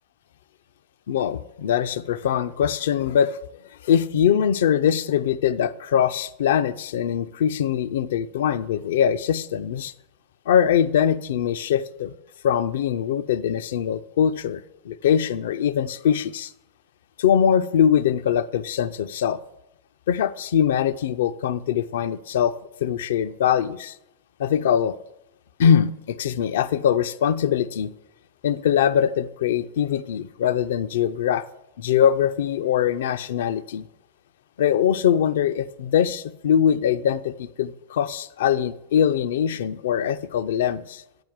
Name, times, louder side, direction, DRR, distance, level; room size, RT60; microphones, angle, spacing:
voice 1, 1.1-3.4 3.8-9.9 10.5-12.1 12.4-16.5 17.2-19.4 20.1-23.9 24.4-25.0 25.6-27.9 28.4-31.5 31.8-33.8 34.6-41.0, left 9 dB, 60° left, 0.4 m, -22 dB
7.8 x 4.5 x 7.1 m
figure-of-eight pair, 90°, 0 cm